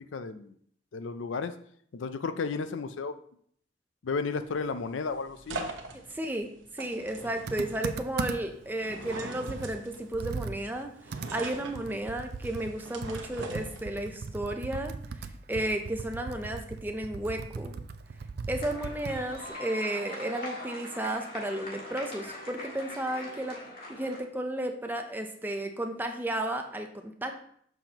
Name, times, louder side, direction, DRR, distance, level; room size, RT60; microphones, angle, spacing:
voice 1, 0.1-0.5 0.9-1.5 1.9-3.2 4.0-5.7, left 4 dB, 80° left, 11 dB, 0.5 m, -33 dB
sound 1, 4.3-14.2, right 3 dB, 85° right, 1.0 m, -43 dB
voice 2, 6.1-14.9 15.5-17.7 18.5-23.6 23.9-27.3, right 1 dB, 10° right, 4 dB, 0.6 m, -33 dB
Computer keyboard, 7.5-8.6 9.1-9.2 9.5-12.8 13.0-19.5, right 4 dB, 55° right, 0.4 m, -38 dB
sound 2, 18.6-24.2, left 1 dB, 50° left, 2.0 m, -42 dB
7.0 x 5.8 x 2.9 m, 0.63 s
head